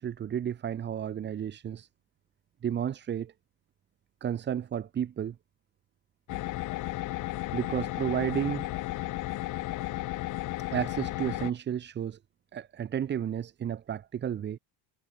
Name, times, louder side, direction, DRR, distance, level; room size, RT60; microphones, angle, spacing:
voice 1, 0.0-1.9 2.6-3.3 4.2-5.4 7.5-8.7 10.7-12.2 12.5-14.6, right 9 dB, 25° right, 0.5 m, -32 dB
sound 1, 6.3-11.5, left 16 dB, 40° left, 0.6 m, -34 dB
supercardioid pair, 100°, 49 cm